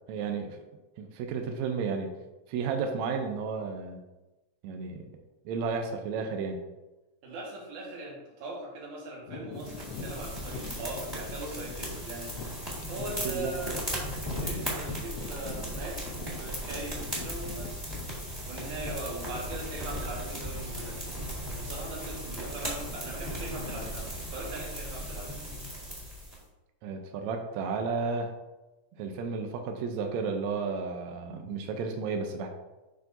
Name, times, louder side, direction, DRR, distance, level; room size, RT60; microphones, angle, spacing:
voice 1, 0.1-0.6 1.0-2.1 2.5-4.0 4.6-5.1 5.4-6.6 13.2-13.5 26.8-28.3 29.0-32.5, right 5 dB, 80° right, 4 dB, 1.6 m, -32 dB
voice 2, 7.2-12.3 12.9-13.9 14.3-17.8 18.5-21.0 21.6-25.5, right 2 dB, 65° right, -3 dB, 2.9 m, -40 dB
sound 1, 9.3-19.0 19.7-19.8 20.4-20.7 20.9-21.2 21.8-22.4 22.7-26.1, left 4 dB, 75° left, 1.4 m, -45 dB
sound 2, 9.6-26.4, equal, 10° right, 1.5 m, -37 dB
9.0 x 5.9 x 2.6 m, 1.1 s
omnidirectional pair, 3.9 m